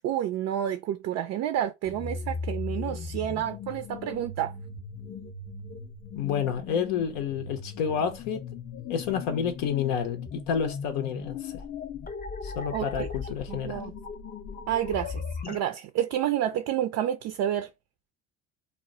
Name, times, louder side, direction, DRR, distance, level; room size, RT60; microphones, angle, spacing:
voice 1, 0.0-4.5 12.7-13.1 13.5-13.9 14.7-17.7, right 11 dB, 45° right, 0.4 m, -29 dB
sound 1, 1.8-15.6, left 5 dB, 25° left, 0.4 m, -38 dB
voice 2, 6.2-8.4 8.9-11.6 12.4-13.8, left 7 dB, 75° left, 0.6 m, -29 dB
2.1 x 2.1 x 3.6 m
hypercardioid pair, 75°, 38 cm